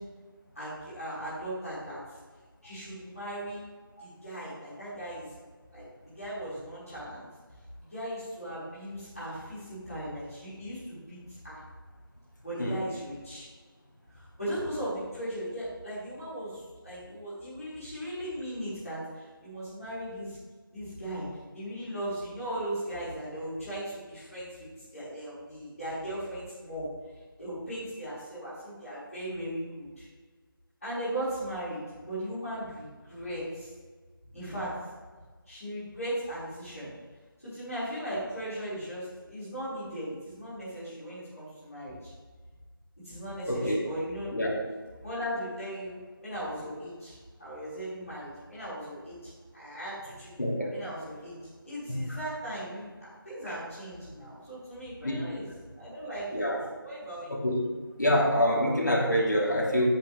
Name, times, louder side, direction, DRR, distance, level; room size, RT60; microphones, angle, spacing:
voice 1, 0.5-2.0 2.6-3.6 4.0-5.3 5.7-7.2 7.8-11.2 11.4-11.6 12.4-13.4 14.1-20.4 20.7-21.2 21.5-26.9 27.4-30.0 30.8-33.7 34.3-34.7 35.4-36.9 37.4-42.1 43.0-44.3 45.0-51.4 51.6-55.5 55.7-56.3 56.8-57.4, right 1 dB, ahead, -36 dB, 1.1 m, -38 dB
voice 2, 43.5-43.8 44.3-44.6 50.4-50.7 51.9-52.0 55.0-55.2 56.3-56.6 57.3-57.6 58.0-59.8, equal, 55° left, -3 dB, 2.7 m, -26 dB
10.0 x 8.8 x 3.5 m, 1.4 s
figure-of-eight pair, 180°, 12 cm